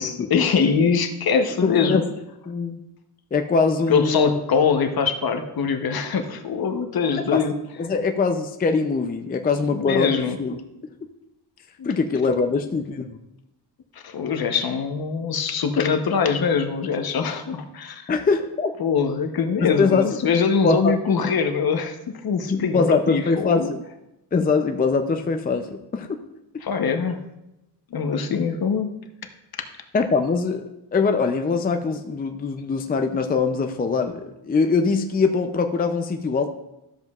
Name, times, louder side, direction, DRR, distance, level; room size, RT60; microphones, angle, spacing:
voice 1, 0.0-2.0 3.9-7.5 9.7-10.4 11.8-11.9 14.0-18.1 18.8-22.0 22.2-23.7 26.6-27.2 27.9-28.9, left 6 dB, 60° left, 6 dB, 0.9 m, -23 dB
voice 2, 1.6-2.0 2.5-2.8 3.3-4.4 7.3-7.4 7.8-10.6 11.8-13.2 18.1-18.7 19.6-20.1 20.6-20.9 22.5-23.8 24.3-26.2 29.9-36.5, left 4 dB, 20° left, 6 dB, 0.4 m, -22 dB
13.0 x 7.3 x 2.4 m, 0.92 s
wide cardioid pair, 120°, 42 cm